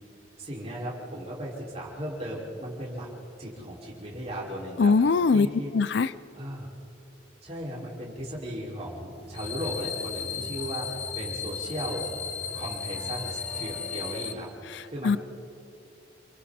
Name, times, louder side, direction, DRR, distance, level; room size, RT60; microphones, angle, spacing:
voice 1, 0.4-3.1 3.4-4.9 5.3-5.7 6.3-6.7 7.4-12.2 12.5-14.5 14.8-15.2, equal, 30° right, -5 dB, 5.4 m, -36 dB
voice 2, 4.8-5.5 5.7-6.1 14.7-15.2, left 4 dB, 60° left, 16 dB, 0.4 m, -22 dB
sound 1, 8.8-14.5, equal, 5° left, 1.7 m, -44 dB
sound 2, 9.3-14.3, left 7 dB, 35° left, 1.0 m, -35 dB
29.5 x 23.5 x 4.3 m, 2.8 s
head